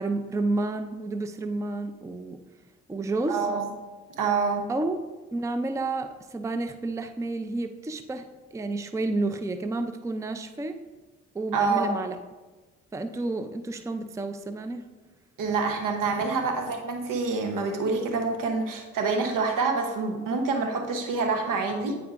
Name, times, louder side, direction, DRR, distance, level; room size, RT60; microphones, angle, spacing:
voice 1, 0.0-2.4 2.9-3.4 4.7-5.0 5.3-8.2 8.5-10.8 11.3-12.2 12.9-14.8, right 2 dB, 10° right, 9 dB, 0.4 m, -30 dB
voice 2, 3.3-3.7 4.2-4.7 11.5-11.9 15.4-22.0, right 4 dB, 70° right, 4 dB, 1.0 m, -27 dB
9.2 x 4.6 x 2.5 m, 1.2 s
supercardioid pair, 55°, 34 cm